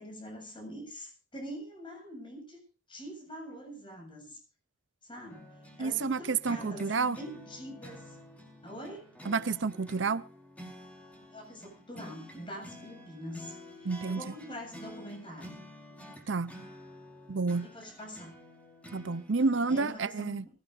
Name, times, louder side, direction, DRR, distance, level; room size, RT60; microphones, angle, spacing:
voice 1, 0.0-2.6 2.9-4.4 5.0-5.5 5.8-8.2 8.6-9.1 11.3-15.6 17.6-18.3 19.7-20.5, equal, 25° left, 7.5 m, -44 dB
sound 1, 5.3-19.9, equal, 5° left, 4.4 m, -50 dB
voice 2, 5.8-7.2 9.3-10.2 13.8-14.2 16.3-16.5 17.3-17.7 18.9-20.4, right 4 dB, 65° right, 0.6 m, -29 dB
24.0 x 16.5 x 2.6 m
head